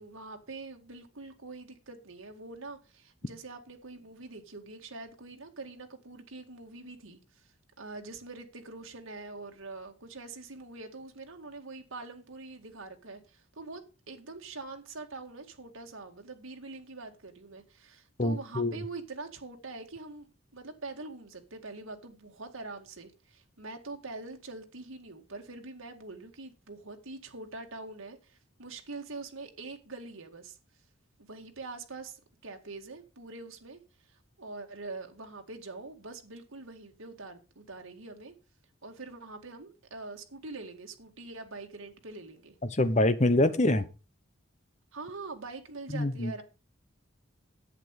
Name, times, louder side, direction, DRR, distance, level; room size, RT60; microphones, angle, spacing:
voice 1, 0.0-7.5 7.8-20.3 20.5-30.6 31.2-33.8 34.1-38.3 38.8-42.6 43.5-43.9 44.9-46.4, right 3 dB, 85° right, 2.2 m, -44 dB
voice 2, 18.2-18.8 42.7-43.8 45.9-46.3, left 1 dB, 35° left, 0.9 m, -25 dB
11.0 x 8.7 x 4.9 m
head